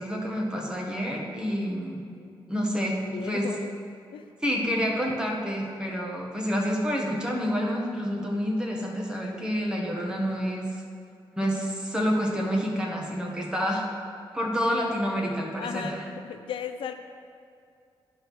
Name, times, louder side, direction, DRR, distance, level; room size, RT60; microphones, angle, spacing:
voice 1, 0.0-2.0 2.5-3.5 4.4-10.7 11.4-13.8 14.3-16.1, equal, 10° right, -2 dB, 1.3 m, -28 dB
voice 2, 3.0-3.7 4.1-4.2 4.5-4.6 15.6-16.0 16.2-16.9, left 7 dB, 75° left, 8 dB, 0.4 m, -36 dB
10.0 x 3.7 x 6.1 m, 2.3 s
cardioid pair, 100°, 9 cm